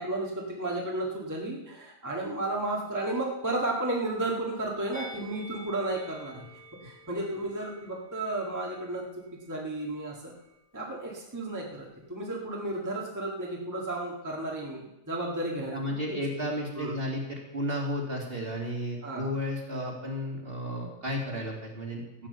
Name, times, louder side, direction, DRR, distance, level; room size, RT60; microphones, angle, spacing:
voice 1, 0.0-6.5 6.8-9.1 9.5-10.3 10.7-16.2 16.8-17.0 19.0-19.3, right 2 dB, 10° right, -2 dB, 1.9 m, -33 dB
Musical instrument, 4.9-10.2 10.4-10.6, right 1 dB, 55° left, 2.8 m, -50 dB
voice 2, 15.7-22.3, equal, 35° right, -1 dB, 2.7 m, -33 dB
14.5 x 8.9 x 6.9 m, 0.93 s
omnidirectional pair, 1.8 m